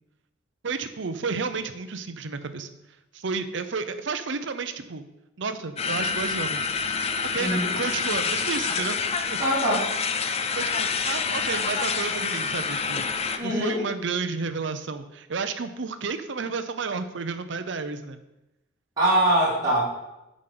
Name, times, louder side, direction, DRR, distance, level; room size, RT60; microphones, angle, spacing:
voice 1, 0.6-2.7 3.1-5.0 5.4-6.6 7.3-9.0 9.3-9.4 10.2-18.2, right 4 dB, 60° right, 9 dB, 0.7 m, -31 dB
sound 1, 5.8-13.4, left 5 dB, 30° left, 0.5 m, -27 dB
voice 2, 7.4-7.7 9.4-9.9 13.4-13.8 19.0-19.8, right 1 dB, 20° right, -10 dB, 3.1 m, -23 dB
7.3 x 5.2 x 6.0 m, 0.95 s
head